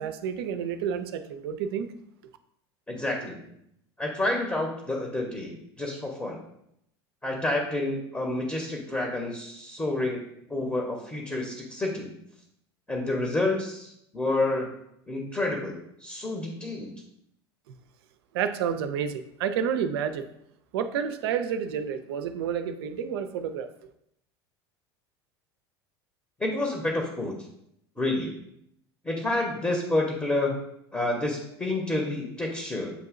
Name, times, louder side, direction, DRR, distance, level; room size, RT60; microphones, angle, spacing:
voice 1, 0.0-1.9 18.3-20.2 20.7-23.7, right 8 dB, 65° right, 10 dB, 0.4 m, -30 dB
voice 2, 2.9-3.4 4.0-6.4 7.2-10.2 10.5-12.1 12.9-14.7 15.1-16.9 26.4-27.4 28.0-28.3 29.0-30.6 30.9-32.9, left 2 dB, 10° left, 1 dB, 0.8 m, -29 dB
8.0 x 2.7 x 2.4 m, 0.76 s
figure-of-eight pair, 75°, 14 cm